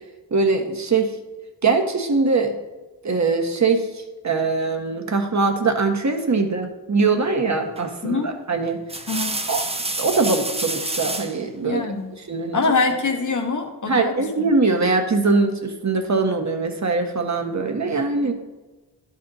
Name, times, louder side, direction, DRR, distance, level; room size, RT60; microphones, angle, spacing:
voice 1, 0.3-1.1 1.6-2.6 3.0-8.8 9.5-9.7 10.0-11.8 12.3-12.6 13.9-18.3, right 3 dB, 40° right, 4 dB, 1.4 m, -22 dB
sound 1, 7.8-8.1 8.7-11.4 12.9-13.5, right 2 dB, 15° right, 0.8 m, -29 dB
voice 2, 11.6-12.2 12.5-14.1, left 4 dB, 45° left, 4 dB, 1.4 m, -23 dB
12.0 x 4.3 x 4.1 m, 1.2 s
cardioid pair, 50°, 43 cm